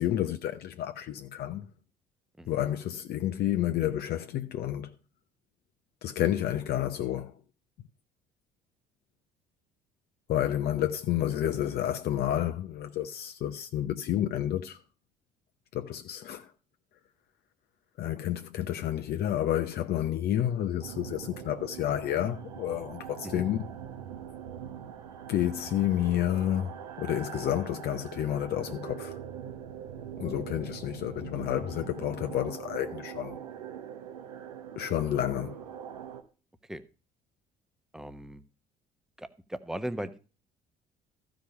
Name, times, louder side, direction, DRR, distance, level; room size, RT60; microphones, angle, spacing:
voice 1, 0.0-1.7 2.5-4.9 6.0-7.4 10.3-14.8 15.7-16.5 18.0-23.7 25.3-29.2 30.2-33.4 34.8-35.6, left 12 dB, 50° left, 0.8 m, -30 dB
sound 1, 20.8-36.2, right 9 dB, 75° right, 1.2 m, -42 dB
voice 2, 37.9-38.4 39.2-40.2, equal, ahead, 1.1 m, -37 dB
14.5 x 5.1 x 7.0 m
figure-of-eight pair, 55°, 21 cm